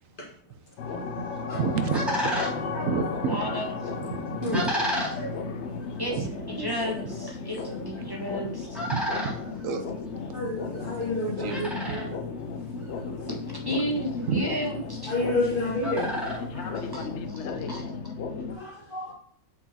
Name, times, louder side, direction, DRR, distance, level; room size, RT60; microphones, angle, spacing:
sound 1, 0.8-18.5, left 5 dB, 65° left, 0.8 m, -35 dB
voice 1, 1.2-3.6 4.0-5.2 6.2-6.3 8.0-8.1 8.9-9.3 9.6-9.8 10.2-10.3 11.4-12.2 14.3-14.5 17.0-17.1 17.6-17.7, right 5 dB, 70° right, 1.0 m, -32 dB
sound 2, 1.3-17.5, equal, ahead, 2.1 m, -36 dB
voice 2, 3.3-3.7 6.0-8.8 13.5-15.1 16.7-17.9, equal, 15° right, 1.1 m, -33 dB
voice 3, 5.2-5.5 6.5-6.7 7.6-7.7 10.3-12.1 15.1-16.2 18.5-19.1, left 1 dB, 40° left, 1.7 m, -30 dB
8.1 x 4.5 x 2.8 m
omnidirectional pair, 1.5 m